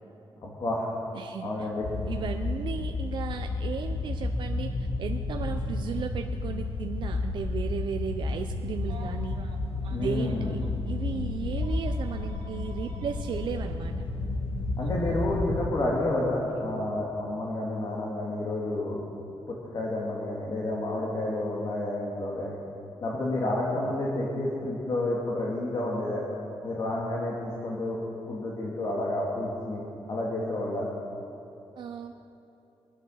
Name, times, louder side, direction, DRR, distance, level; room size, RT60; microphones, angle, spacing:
voice 1, 0.4-0.9 1.4-1.9 9.9-10.6 14.8-19.0 19.5-22.6 23.0-26.2 26.6-28.0 28.3-29.8 30.1-30.9, left 1 dB, 45° left, -4 dB, 2.2 m, -30 dB
voice 2, 1.1-1.5 2.1-9.4 10.0-10.6 10.8-13.9 31.8-32.1, right 7 dB, 55° right, 5 dB, 0.6 m, -35 dB
sound 1, 1.8-15.7, left 3 dB, 80° left, 1.4 m, -31 dB
Telephone, 8.8-10.7 11.6-13.5 14.8-15.0 16.5-16.7, right 4 dB, 80° right, 1.8 m, -49 dB
22.5 x 9.8 x 6.4 m, 2.9 s
wide cardioid pair, 175°, 9 cm